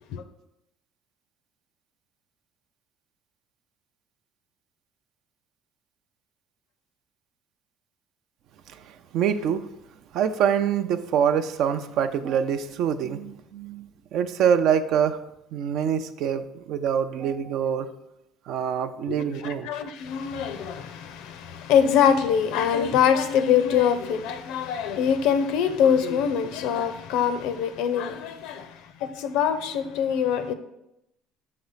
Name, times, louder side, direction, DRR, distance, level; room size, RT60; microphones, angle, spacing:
voice 1, 9.1-9.7 10.1-15.2 15.5-17.9 18.5-19.7, right 8 dB, 65° right, 0.4 m, -25 dB
voice 2, 19.1-30.5, left 8 dB, 75° left, 0.5 m, -24 dB
5.9 x 3.2 x 5.6 m
supercardioid pair, 95°, 0 cm